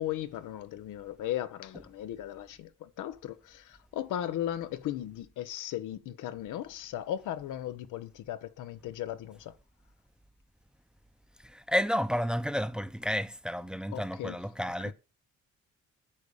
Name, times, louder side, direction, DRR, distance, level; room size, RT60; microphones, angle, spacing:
voice 1, 0.0-9.6 13.9-14.4, left 12 dB, 85° left, 1.0 m, -37 dB
voice 2, 11.4-14.9, equal, 5° right, 0.7 m, -31 dB
8.9 x 4.9 x 6.9 m
cardioid pair, 90°, 30 cm